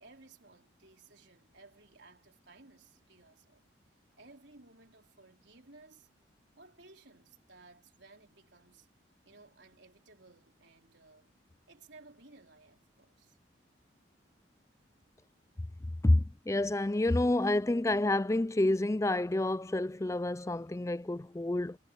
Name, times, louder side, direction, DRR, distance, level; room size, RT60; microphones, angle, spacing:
voice 1, 0.0-3.6 4.2-6.1 6.6-8.9 9.3-11.3 11.7-13.4, right 3 dB, 65° right, 4.2 m, -58 dB
voice 2, 16.0-21.8, left 1 dB, 15° left, 0.4 m, -28 dB
head